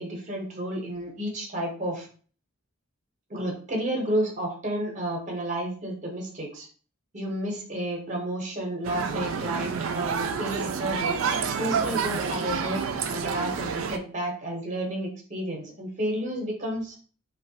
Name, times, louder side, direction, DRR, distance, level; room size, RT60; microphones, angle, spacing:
voice 1, 0.0-2.1 3.3-6.7 7.1-11.2 11.6-12.8 13.1-17.0, right 1 dB, 40° right, 1 dB, 0.8 m, -31 dB
sound 1, 8.8-14.0, right 6 dB, 85° right, 0.3 m, -29 dB
3.1 x 2.2 x 2.7 m, 0.42 s
head